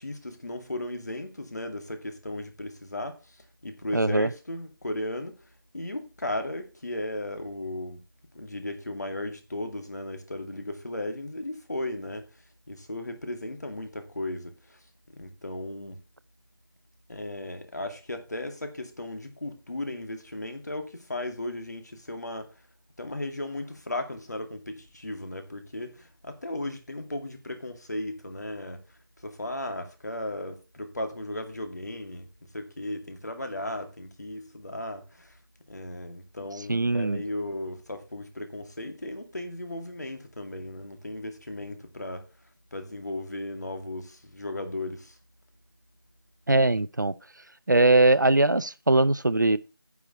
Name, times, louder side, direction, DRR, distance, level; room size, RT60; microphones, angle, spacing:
voice 1, 0.0-5.4 5.7-8.0 8.3-12.3 12.7-14.8 15.1-16.0 17.1-22.6 23.0-28.8 29.2-32.3 32.5-35.4 35.7-42.3 42.7-45.2, left 1 dB, 45° left, 2.3 m, -36 dB
voice 2, 3.9-4.3 36.7-37.2 46.5-47.1 47.7-49.6, right 2 dB, 55° right, 0.6 m, -21 dB
9.9 x 4.7 x 7.8 m
figure-of-eight pair, 175°, 12 cm